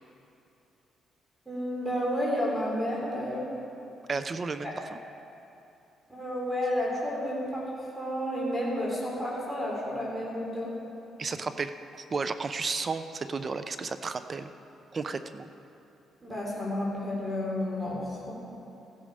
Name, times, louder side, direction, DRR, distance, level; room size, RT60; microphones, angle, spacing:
voice 1, 1.5-3.5 6.1-7.6 8.0-10.7 16.2-18.3, left 1 dB, 15° right, -5 dB, 3.9 m, -31 dB
voice 2, 4.1-5.0 11.2-11.7 12.1-14.5 14.9-15.5, right 4 dB, 40° right, 10 dB, 0.6 m, -33 dB
15.5 x 11.5 x 5.0 m, 2.9 s
cardioid pair, 90°, 0 cm